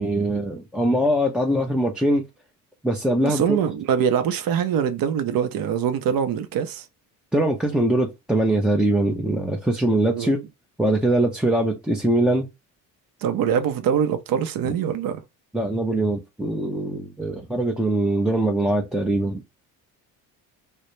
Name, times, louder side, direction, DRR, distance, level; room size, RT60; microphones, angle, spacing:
voice 1, 0.0-2.3 2.8-3.6 7.3-10.4 10.8-12.5 15.5-19.4, right 1 dB, ahead, 0.4 m, -22 dB
voice 2, 3.2-6.9 10.1-10.3 13.2-15.2, right 8 dB, 55° right, 0.6 m, -23 dB
2.4 x 2.1 x 2.9 m
hypercardioid pair, 65°, 43 cm